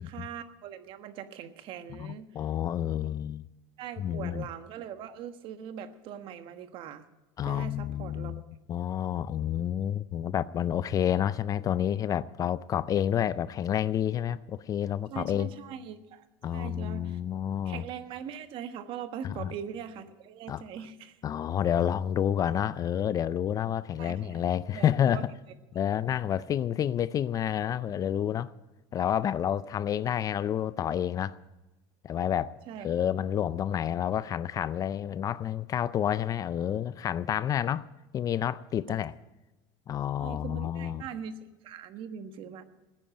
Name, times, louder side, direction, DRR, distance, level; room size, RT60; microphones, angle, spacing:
voice 1, 0.0-2.3 3.8-7.0 7.4-8.5 15.1-16.2 16.5-17.2 17.6-21.2 24.0-24.4 24.7-25.2 32.7-32.9 38.9-39.0 40.2-42.6, right 8 dB, 50° right, 1.3 m, -41 dB
voice 2, 1.9-3.4 4.0-4.4 7.4-8.4 8.7-15.5 16.4-17.8 19.2-19.5 20.5-20.6 21.2-25.3 25.7-28.5 28.9-31.4 32.0-32.6 32.8-37.9 38.1-39.2 39.9-41.0, left 10 dB, 30° left, 0.4 m, -29 dB
15.5 x 10.0 x 7.7 m
supercardioid pair, 130°, 11 cm